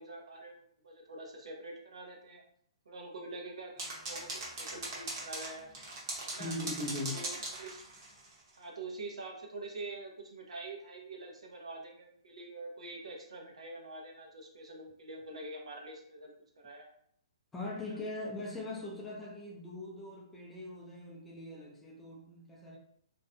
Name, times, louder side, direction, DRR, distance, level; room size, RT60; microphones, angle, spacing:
voice 1, 0.0-2.4 2.9-5.7 6.2-6.5 7.0-7.8 8.6-16.3 16.6-16.9 17.9-18.0, right 2 dB, 90° right, 1 dB, 0.7 m, -45 dB
sound 1, 3.8-8.3, right 2 dB, 35° right, 0.8 m, -40 dB
voice 2, 6.4-7.2 17.5-22.8, left 2 dB, 5° left, -3 dB, 0.4 m, -41 dB
2.6 x 2.1 x 2.5 m, 0.65 s
hypercardioid pair, 165°, 3 cm